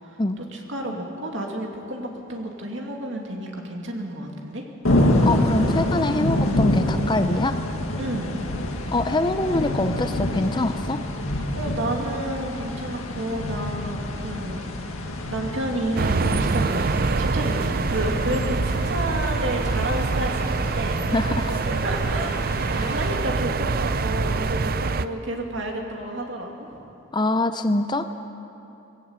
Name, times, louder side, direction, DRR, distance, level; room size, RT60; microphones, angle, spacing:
voice 1, 0.4-4.7 8.0-8.4 11.5-21.0 21.7-26.7, right 1 dB, 60° right, 1 dB, 2.6 m, -31 dB
sound 1, 4.8-23.2, left 1 dB, 85° left, 2.1 m, -27 dB
voice 2, 5.2-7.6 8.9-11.0 21.1-21.6 22.7-23.0 27.1-28.1, left 2 dB, 20° left, 9 dB, 0.6 m, -24 dB
sound 2, 16.0-25.1, right 4 dB, 45° right, 0.5 m, -25 dB
20.0 x 17.0 x 8.2 m, 2.9 s
head